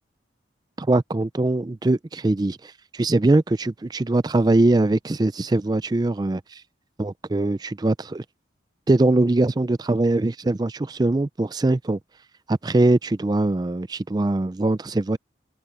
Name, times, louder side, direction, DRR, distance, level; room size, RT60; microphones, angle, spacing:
voice 1, 0.8-6.6 7.0-8.2 8.9-12.0 12.5-15.2, right 2 dB, 20° right, 0.4 m, -22 dB
head